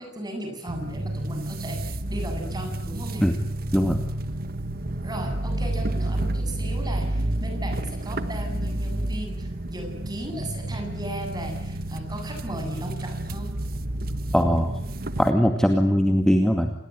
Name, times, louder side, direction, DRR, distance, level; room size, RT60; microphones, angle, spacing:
voice 1, 0.0-3.3 5.0-13.5, right 1 dB, 20° right, 5 dB, 8.0 m, -36 dB
sound 1, 0.7-15.3, right 1 dB, 55° right, 1.4 m, -30 dB
voice 2, 14.3-14.7 15.2-16.7, equal, 5° left, 4 dB, 2.2 m, -20 dB
28.5 x 20.5 x 10.0 m, 0.71 s
head